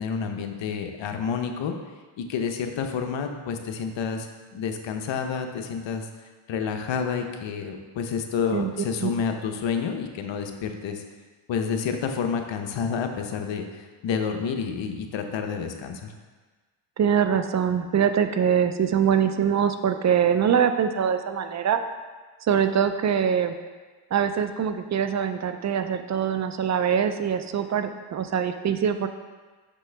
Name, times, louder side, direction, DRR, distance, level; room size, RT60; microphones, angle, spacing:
voice 1, 0.0-1.7 2.2-6.1 6.5-11.0 11.5-16.1, left 6 dB, 60° left, 5 dB, 0.9 m, -29 dB
voice 2, 17.0-21.8 22.4-23.5 24.1-29.1, right 8 dB, 35° right, 8 dB, 0.4 m, -23 dB
6.0 x 5.9 x 3.4 m, 1.4 s
cardioid pair, 80°, 50 cm